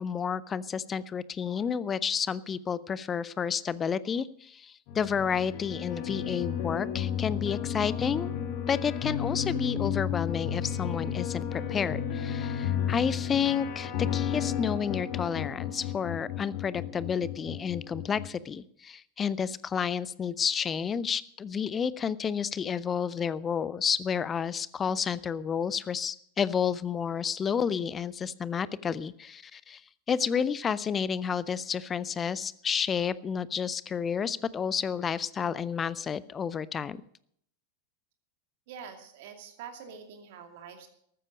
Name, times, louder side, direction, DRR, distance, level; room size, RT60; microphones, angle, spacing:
voice 1, 0.0-8.3 8.7-29.8 30.1-37.0, left 7 dB, 20° left, 19 dB, 0.6 m, -30 dB
sound 1, 4.9-18.3, left 9 dB, 45° left, 1.6 m, -33 dB
voice 2, 38.7-40.9, right 7 dB, 50° right, 5 dB, 2.5 m, -45 dB
14.0 x 13.5 x 5.2 m, 0.68 s
figure-of-eight pair, 90°, 0 cm